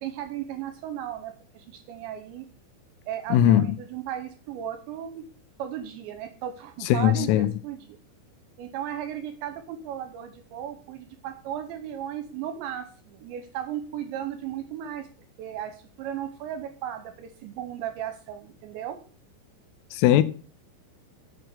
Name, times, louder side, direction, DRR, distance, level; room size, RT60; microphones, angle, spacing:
voice 1, 0.0-2.5 3.1-5.2 5.6-8.0 8.6-15.1 15.4-19.0, right 10 dB, 80° right, 2.7 m, -35 dB
voice 2, 3.3-3.7 6.9-7.5 19.9-20.2, left 11 dB, 85° left, 3.4 m, -19 dB
8.9 x 6.2 x 7.7 m
omnidirectional pair, 6.0 m